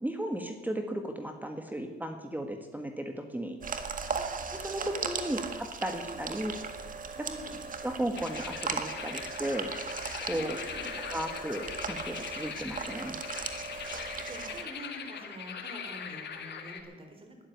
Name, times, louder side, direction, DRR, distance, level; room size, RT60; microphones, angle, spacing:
voice 1, 0.0-3.6 4.5-6.5 7.8-9.7 10.2-10.6 11.0-13.2, right 1 dB, 10° right, 5 dB, 1.6 m, -35 dB
sound 1, 3.6-14.6, right 5 dB, 45° right, 1.7 m, -38 dB
voice 2, 4.1-5.5 5.9-6.3 7.1-7.6 10.3-10.9 13.7-17.4, right 1 dB, 30° right, 5 dB, 3.8 m, -47 dB
sound 2, 8.1-16.8, left 6 dB, 60° left, 2.2 m, -41 dB
12.5 x 10.5 x 9.4 m, 1.4 s
cardioid pair, 90°, 20 cm